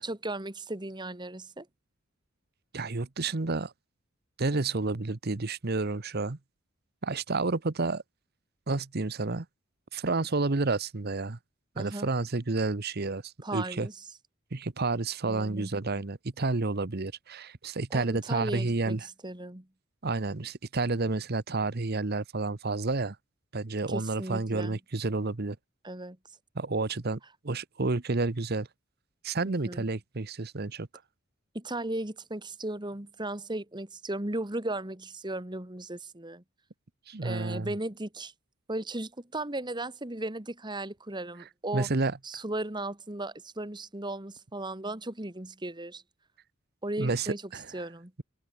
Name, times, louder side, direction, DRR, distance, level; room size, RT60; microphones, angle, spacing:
voice 1, 0.0-1.7 11.7-12.1 13.4-13.9 15.3-15.7 17.9-19.7 23.9-24.8 25.8-26.2 29.4-29.8 31.5-36.4 37.2-38.3 38.7-41.9 42.2-46.0 46.8-47.4 47.7-48.1, right 2 dB, 20° right, 1.7 m, -36 dB
voice 2, 2.7-3.7 4.4-6.4 7.0-8.0 8.7-9.5 9.9-11.4 11.8-13.9 14.5-19.1 20.0-23.2 23.5-25.6 26.5-28.7 29.2-30.9 37.1-37.7 41.7-42.2 47.0-47.9, right 3 dB, 50° right, 1.0 m, -30 dB
head